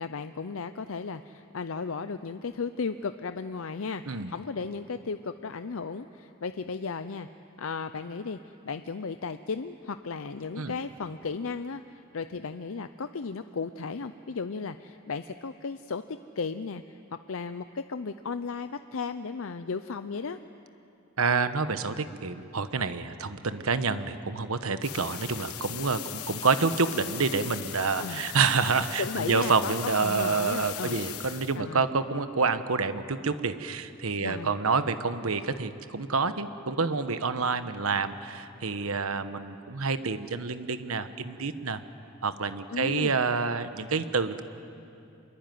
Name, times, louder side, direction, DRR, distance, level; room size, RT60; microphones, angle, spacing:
voice 1, 0.0-7.3 7.6-17.0 17.3-20.4 28.0-28.2 29.0-29.7 30.0-31.0 31.6-31.8 34.2-34.5 42.7-43.2, left 4 dB, 65° left, 10 dB, 0.6 m, -35 dB
voice 2, 21.2-41.8 42.2-44.4, right 4 dB, 75° right, 11 dB, 1.1 m, -28 dB
sound 1, 24.8-31.6, left 12 dB, 90° left, 1.1 m, -39 dB
25.5 x 22.5 x 9.4 m, 2.7 s
head